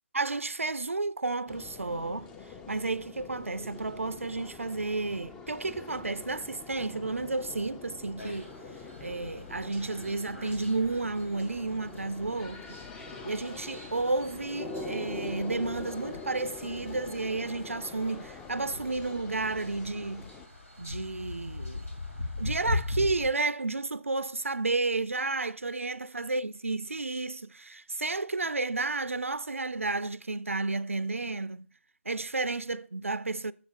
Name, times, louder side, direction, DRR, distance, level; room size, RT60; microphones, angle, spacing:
voice 1, 0.1-2.3 2.7-8.5 9.0-12.8 13.2-20.3 20.8-21.9 22.4-31.7 32.1-33.5, right 3 dB, 80° right, 0.3 m, -32 dB
sound 1, 1.5-20.5, left 3 dB, 10° left, 0.3 m, -44 dB
sound 2, 8.2-23.3, left 2 dB, 85° left, 2.4 m, -41 dB
7.6 x 7.4 x 2.4 m
figure-of-eight pair, 135°, 7 cm